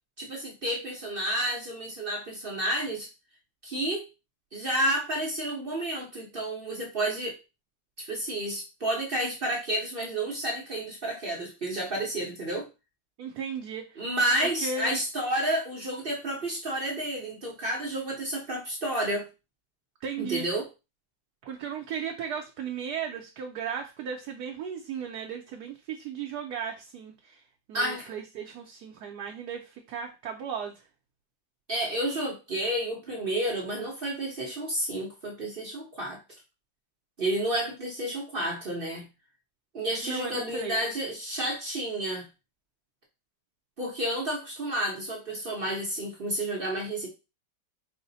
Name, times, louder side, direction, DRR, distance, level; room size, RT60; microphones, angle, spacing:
voice 1, 0.2-3.1 3.6-4.1 4.5-7.4 8.0-12.7 14.0-19.3 20.2-20.7 27.7-28.1 31.7-36.2 37.2-39.1 39.7-42.3 43.8-47.1, right 1 dB, 45° right, -1 dB, 0.7 m, -30 dB
voice 2, 13.2-14.1 14.4-15.0 20.0-20.4 21.4-27.4 27.7-30.8 40.0-40.8, right 6 dB, 70° right, 2 dB, 1.1 m, -36 dB
4.8 x 2.1 x 3.9 m, 0.28 s
omnidirectional pair, 2.0 m